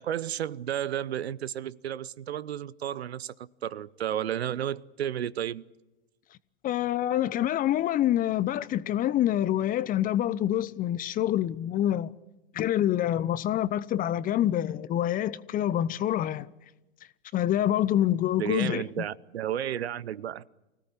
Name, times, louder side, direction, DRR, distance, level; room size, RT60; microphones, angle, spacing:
voice 1, 0.0-5.6 18.3-20.4, right 10 dB, 75° right, 0.8 m, -32 dB
voice 2, 6.6-12.1 12.5-16.5 17.3-18.8, left 12 dB, 25° left, 0.8 m, -26 dB
25.0 x 17.0 x 9.9 m
hypercardioid pair, 105°, 32 cm